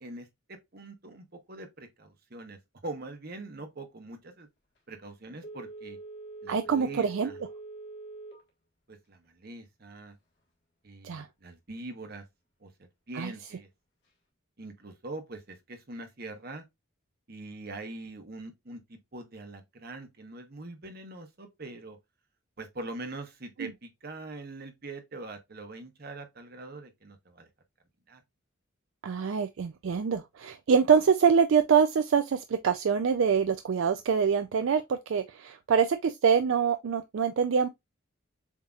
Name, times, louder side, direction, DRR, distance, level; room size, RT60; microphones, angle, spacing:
voice 1, 0.0-4.5 4.9-6.0 6.4-7.4 8.9-10.2 10.8-12.2 12.6-12.7 13.1-13.7 14.6-16.6 17.3-22.0 22.6-27.5 28.1-28.2, right 2 dB, 45° right, 1.0 m, -43 dB
Telephone, 5.4-8.5 8.9-9.0, right 3 dB, 55° left, 1.5 m, -44 dB
voice 2, 6.5-7.3 11.0-11.3 13.2-13.3 23.6-23.7 29.0-37.7, right 6 dB, 65° right, 0.4 m, -25 dB
7.2 x 2.8 x 2.4 m
head